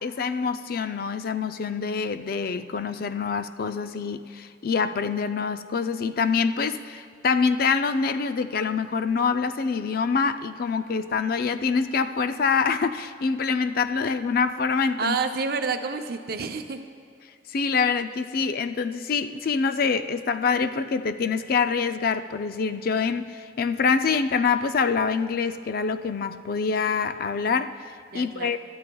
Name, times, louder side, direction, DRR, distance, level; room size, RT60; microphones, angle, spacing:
voice 1, 0.0-15.2 17.5-28.6, left 5 dB, 55° left, 10 dB, 0.4 m, -25 dB
voice 2, 15.0-16.8 28.1-28.6, right 4 dB, 55° right, 7 dB, 0.6 m, -29 dB
21.0 x 12.0 x 2.3 m, 2.3 s
head